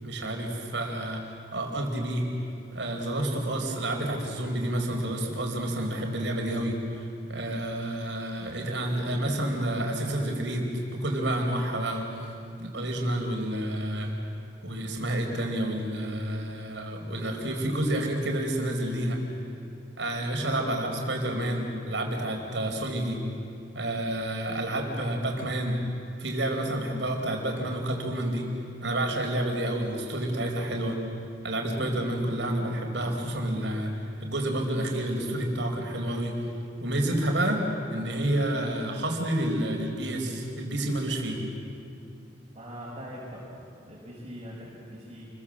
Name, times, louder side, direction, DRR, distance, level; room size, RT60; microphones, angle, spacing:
voice 1, 0.0-2.2 2.7-12.0 12.6-14.1 14.6-19.2 20.0-23.2 23.7-25.8 26.2-28.5 28.8-31.0 31.4-33.9 34.2-36.3 36.8-37.6 37.9-41.4, right 1 dB, 80° right, 2 dB, 4.8 m, -29 dB
voice 2, 42.5-43.5 43.9-45.3, equal, 35° right, -6 dB, 5.4 m, -41 dB
29.5 x 23.0 x 7.6 m, 2.6 s
head